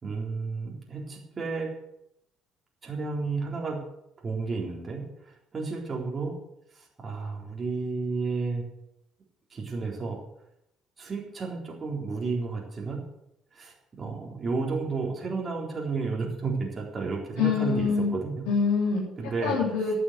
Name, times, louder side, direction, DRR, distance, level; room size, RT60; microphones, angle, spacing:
voice 1, 0.0-1.7 2.8-3.8 4.2-6.3 6.8-8.6 9.5-10.2 11.0-13.0 13.5-18.5 19.2-19.6, right 4 dB, 40° right, -1 dB, 3.8 m, -32 dB
voice 2, 17.4-18.1 18.5-19.0 19.4-19.9, left 5 dB, 80° left, -6 dB, 4.1 m, -25 dB
11.0 x 10.0 x 8.2 m, 0.81 s
hypercardioid pair, 55°, 0 cm